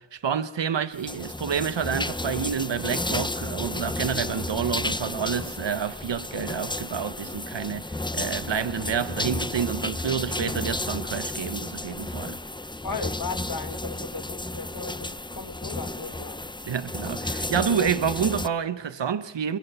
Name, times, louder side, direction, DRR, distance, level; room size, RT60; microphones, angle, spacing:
voice 1, 0.0-12.4 16.7-19.6, right 7 dB, 90° right, 1.1 m, -29 dB
sound 1, 1.0-18.5, left 2 dB, 10° left, 0.8 m, -32 dB
voice 2, 12.8-16.4, left 4 dB, 60° left, 2.1 m, -36 dB
26.5 x 21.5 x 6.8 m
wide cardioid pair, 60°, 42 cm